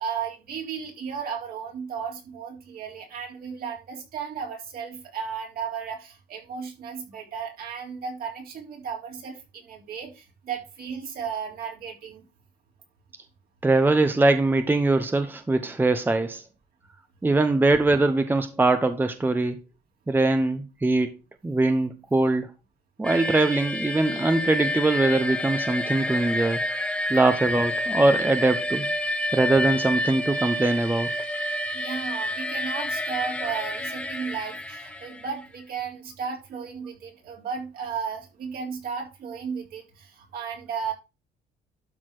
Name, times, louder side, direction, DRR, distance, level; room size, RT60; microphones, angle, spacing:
voice 1, 0.0-12.2 31.7-40.9, right 6 dB, 60° right, 3.6 m, -34 dB
voice 2, 13.6-16.4 17.2-19.6 20.1-21.1 21.4-22.5 23.0-26.6 27.1-28.9 29.3-31.1, right 2 dB, 10° right, 0.8 m, -22 dB
sound 1, 23.0-35.4, left 1 dB, 5° left, 1.4 m, -29 dB
12.0 x 4.2 x 4.7 m
cardioid pair, 110°, 17 cm